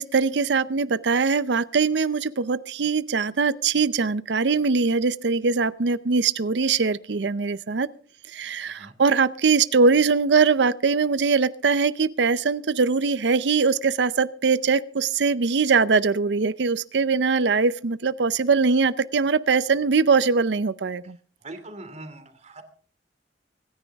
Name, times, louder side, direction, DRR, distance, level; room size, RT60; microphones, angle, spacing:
voice 1, 0.0-7.9 8.3-21.2, right 4 dB, 70° right, 16 dB, 0.6 m, -22 dB
voice 2, 21.4-22.6, right 2 dB, 40° right, 9 dB, 2.6 m, -41 dB
25.5 x 10.5 x 3.5 m, 0.42 s
head